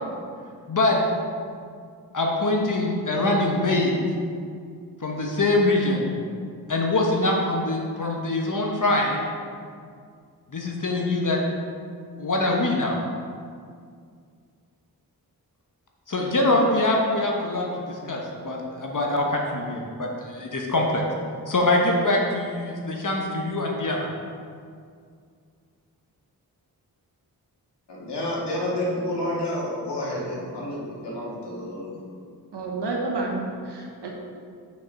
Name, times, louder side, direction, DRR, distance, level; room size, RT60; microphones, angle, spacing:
voice 1, 0.7-1.0 2.1-3.9 5.0-6.0 6.7-9.2 10.5-11.4 12.2-13.0 16.1-21.0 21.5-24.1, left 2 dB, 50° left, -1 dB, 1.3 m, -24 dB
voice 2, 27.9-32.0, left 1 dB, 85° left, -5 dB, 2.1 m, -29 dB
voice 3, 32.5-34.1, right 2 dB, 80° right, -1 dB, 1.1 m, -29 dB
6.6 x 5.6 x 5.3 m, 2.2 s
cardioid pair, 60°, 40 cm